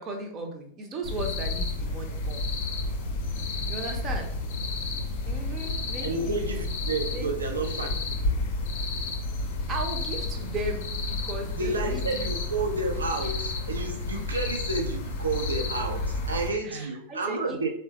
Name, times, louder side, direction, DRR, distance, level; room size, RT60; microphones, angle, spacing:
voice 1, 0.0-2.4 3.7-4.3 5.2-6.4 7.1-7.4 9.7-12.2 16.6-17.6, right 2 dB, 30° right, 3 dB, 0.6 m, -36 dB
sound 1, 1.0-16.5, left 2 dB, 50° left, 0.5 m, -31 dB
voice 2, 5.5-8.0 11.6-17.7, right 3 dB, 75° right, 3 dB, 0.5 m, -31 dB
3.4 x 2.1 x 2.8 m, 0.63 s
figure-of-eight pair, 90°, 0 cm